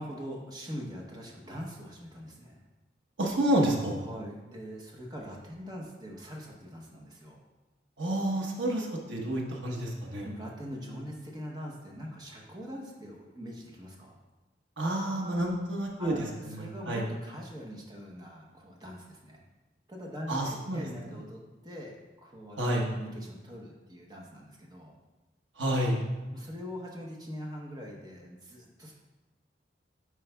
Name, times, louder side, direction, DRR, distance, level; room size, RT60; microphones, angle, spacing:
voice 1, 0.0-2.6 4.0-7.4 10.2-14.2 16.0-19.4 19.9-24.9 26.3-28.9, equal, 20° right, -2 dB, 0.8 m, -43 dB
voice 2, 3.2-4.0 8.0-10.3 14.8-17.1 20.3-21.2 22.6-22.9 25.6-26.0, right 1 dB, 85° right, -1 dB, 1.0 m, -29 dB
9.8 x 4.7 x 2.3 m, 1.1 s
head